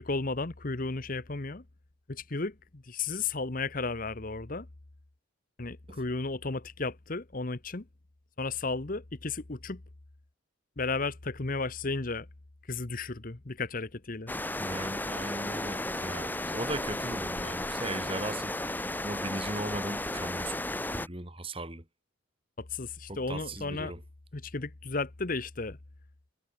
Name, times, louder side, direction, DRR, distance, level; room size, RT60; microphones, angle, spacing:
voice 1, 0.0-1.6 2.1-4.7 5.6-7.8 8.4-9.8 10.8-12.3 12.7-14.3 22.6-23.9 24.3-25.8, left 3 dB, 40° left, 1.0 m, -34 dB
sound 1, 14.3-21.1, left 1 dB, 10° left, 2.0 m, -34 dB
voice 2, 14.6-18.6 19.0-20.6 20.9-21.8 23.1-24.0, right 1 dB, 25° right, 4.7 m, -38 dB
head